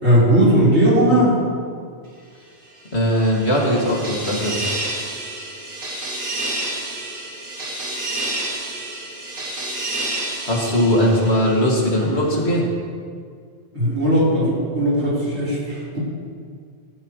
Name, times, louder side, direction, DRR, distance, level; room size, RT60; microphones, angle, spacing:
voice 1, 0.0-1.3 13.7-16.0, equal, 90° right, -8 dB, 4.9 m, -17 dB
sound 1, 2.8-11.9, right 1 dB, 50° right, 1.7 m, -29 dB
voice 2, 2.9-4.5 10.5-12.7, equal, 75° left, -3 dB, 2.9 m, -19 dB
16.0 x 14.5 x 3.3 m, 2.1 s
omnidirectional pair, 1.1 m